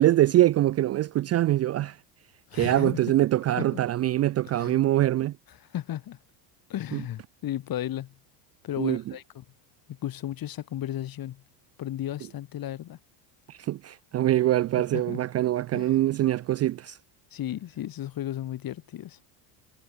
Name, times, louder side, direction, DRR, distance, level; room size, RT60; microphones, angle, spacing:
voice 1, 0.0-2.0 2.5-5.3 6.9-7.0 8.8-9.0 13.5-17.0, right 14 dB, 30° right, 0.5 m, -24 dB
voice 2, 2.5-3.0 3.6-3.8 4.6-4.8 5.5-6.2 6.7-8.1 8.6-9.4 9.9-11.4 11.8-13.0 14.9-15.2 15.7-15.9 17.3-19.2, left 12 dB, 45° left, 3.6 m, -34 dB
supercardioid pair, 110°, 49 cm